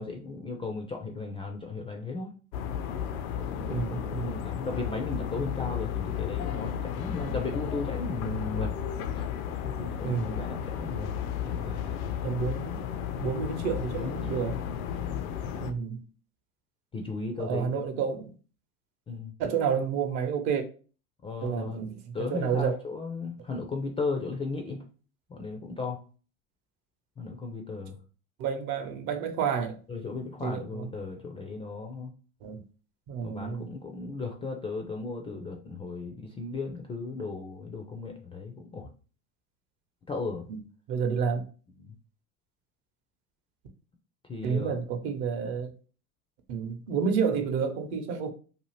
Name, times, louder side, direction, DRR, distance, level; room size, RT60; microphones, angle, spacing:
voice 1, 0.0-2.3 3.3-8.7 9.2-9.3 9.6-11.1 11.4-12.2 14.0-14.4 14.7-15.6 16.9-17.9 19.1-19.3 21.2-21.8 22.1-24.8 25.3-26.0 27.2-28.0 29.9-32.1 33.2-38.9 40.1-40.4 41.8-41.9 44.3-44.8, left 3 dB, 15° left, 0.3 m, -36 dB
sound 1, 2.5-15.7, left 8 dB, 80° left, 0.5 m, -33 dB
voice 2, 3.7-4.4 10.0-10.4 12.2-12.8 13.2-14.6 15.6-16.0 17.4-18.3 19.4-20.6 21.4-22.7 28.4-29.8 30.4-30.9 32.4-32.6 33.1-33.7 40.5-40.6 40.9-41.4 44.4-45.7 46.5-48.3, right 6 dB, 55° right, 0.8 m, -30 dB
2.7 x 2.4 x 3.1 m
hypercardioid pair, 85°, 42 cm